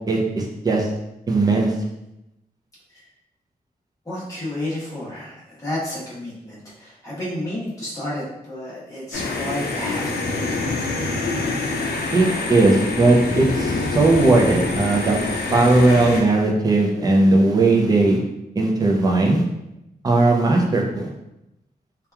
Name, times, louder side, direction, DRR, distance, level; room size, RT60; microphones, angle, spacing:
voice 1, 0.1-0.9 1.3-1.7 12.1-15.2 15.5-18.2 18.6-19.4 20.0-21.1, right 2 dB, 25° right, -1 dB, 0.4 m, -18 dB
voice 2, 4.0-10.9, left 1 dB, 20° left, -10 dB, 1.1 m, -31 dB
sound 1, 9.1-16.2, left 3 dB, 85° left, 0.4 m, -25 dB
2.8 x 2.3 x 2.2 m, 0.89 s
wide cardioid pair, 150°, 16 cm